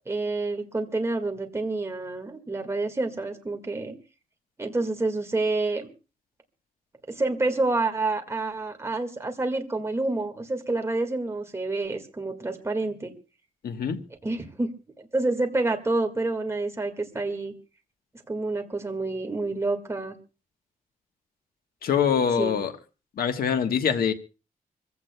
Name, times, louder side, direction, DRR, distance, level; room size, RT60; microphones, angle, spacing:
voice 1, 0.1-3.9 4.6-5.9 7.1-13.1 14.2-14.7 15.1-17.5 18.3-20.2 22.4-22.6, right 2 dB, 20° right, 1.8 m, -28 dB
voice 2, 13.6-14.0 21.8-22.7 23.2-24.1, left 7 dB, 85° left, 1.3 m, -24 dB
25.5 x 15.5 x 2.3 m
wide cardioid pair, 140°, 15 cm